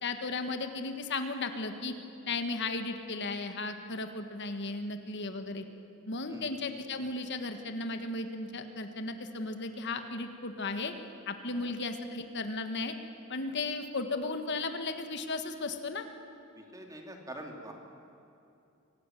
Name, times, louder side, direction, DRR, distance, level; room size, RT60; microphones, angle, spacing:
voice 1, 0.0-1.9 2.2-5.6 6.1-10.9 11.3-12.9 13.3-16.1, left 3 dB, 55° left, 7 dB, 1.5 m, -35 dB
voice 2, 16.5-17.7, right 1 dB, 15° right, 2 dB, 2.7 m, -45 dB
24.5 x 16.5 x 9.2 m, 2.7 s
head